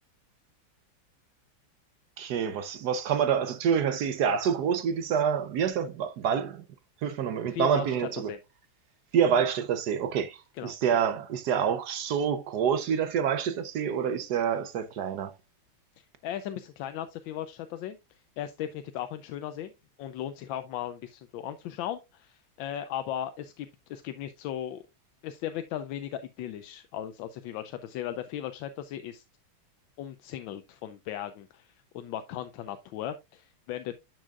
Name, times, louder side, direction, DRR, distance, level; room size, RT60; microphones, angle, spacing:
voice 1, 2.2-6.6 7.0-8.3 9.1-15.3, right 7 dB, 65° right, 1.0 m, -27 dB
voice 2, 7.5-8.4 10.6-10.8 16.0-18.0 18.4-19.7 20.0-24.8 25.2-29.2 30.0-34.0, left 11 dB, 80° left, 1.3 m, -37 dB
10.5 x 6.3 x 2.3 m
omnidirectional pair, 2.2 m